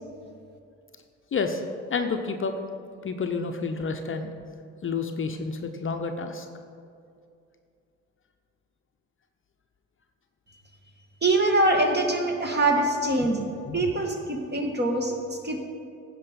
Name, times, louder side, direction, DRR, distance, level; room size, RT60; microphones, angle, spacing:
voice 1, 1.3-1.6 1.9-2.6 3.0-4.3 4.8-6.5 13.2-13.3 13.7-13.9, left 4 dB, 35° left, 5 dB, 0.8 m, -29 dB
voice 2, 11.2-13.4 13.7-15.6, right 2 dB, 25° right, 3 dB, 1.8 m, -24 dB
15.5 x 5.3 x 5.3 m, 2.4 s
hypercardioid pair, 50°, 36 cm